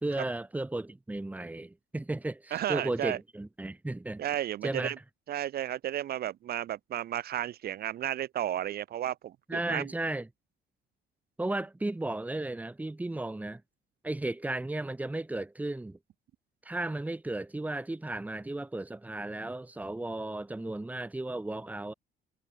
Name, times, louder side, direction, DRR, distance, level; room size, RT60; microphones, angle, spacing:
voice 1, 0.0-4.2 4.6-4.9 9.5-10.3 11.4-13.6 14.0-16.0 16.6-21.9, right 2 dB, 10° right, 3.2 m, -34 dB
voice 2, 2.5-3.2 4.2-5.0 5.3-9.9, right 12 dB, 60° right, 2.0 m, -33 dB
cardioid pair, 155°, 18 cm